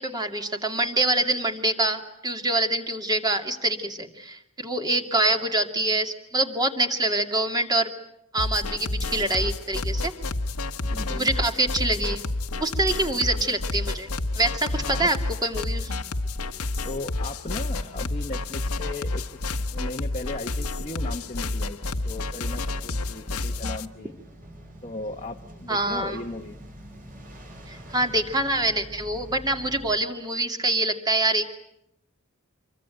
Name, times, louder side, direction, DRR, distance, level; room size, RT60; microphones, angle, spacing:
voice 1, 0.0-7.9 8.3-10.1 11.1-12.2 12.6-15.2 15.4-15.9 25.7-26.2 27.7-31.4, right 2 dB, 20° right, 5 dB, 2.5 m, -25 dB
sound 1, 8.4-23.9, left 2 dB, 85° left, 1.4 m, -30 dB
voice 2, 10.8-11.3 13.1-13.5 14.8-15.1 16.8-24.1 24.8-26.6, left 2 dB, 30° left, 1 dB, 1.3 m, -37 dB
sound 2, 11.8-29.9, equal, 40° right, 6.9 m, -48 dB
27.0 x 23.5 x 9.3 m, 0.82 s
head